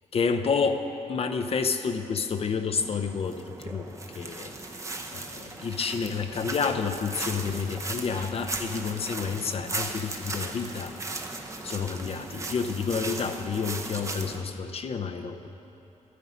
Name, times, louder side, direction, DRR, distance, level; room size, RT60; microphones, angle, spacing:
voice 1, 0.1-0.8 1.1-4.5 5.1-10.9 11.6-15.5, left 5 dB, 50° left, 7 dB, 0.6 m, -29 dB
sound 1, 2.8-14.4, right 2 dB, 25° right, 0.8 m, -37 dB
12.5 x 9.5 x 5.1 m, 3.0 s
cardioid pair, 110°, 13 cm